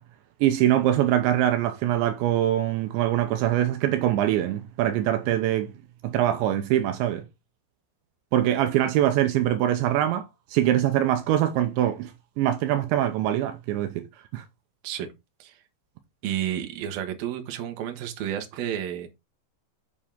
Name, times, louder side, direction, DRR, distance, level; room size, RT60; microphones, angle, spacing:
voice 1, 0.4-5.7 6.0-7.2 8.3-10.3 10.5-12.1 12.4-14.1 14.3-14.4, right 12 dB, 80° right, 3.1 m, -23 dB
voice 2, 16.2-19.1, right 10 dB, 65° right, 3.0 m, -31 dB
7.4 x 7.2 x 3.6 m
omnidirectional pair, 5.2 m